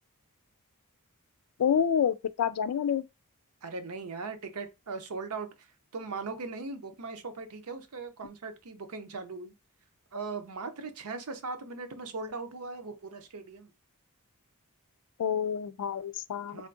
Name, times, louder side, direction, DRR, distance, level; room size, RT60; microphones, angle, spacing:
voice 1, 1.6-3.0 15.2-16.6, left 8 dB, 80° left, 0.3 m, -28 dB
voice 2, 3.6-5.7 5.9-9.5 10.1-13.7 16.5-16.7, right 4 dB, 75° right, 0.7 m, -39 dB
3.5 x 2.4 x 2.5 m
head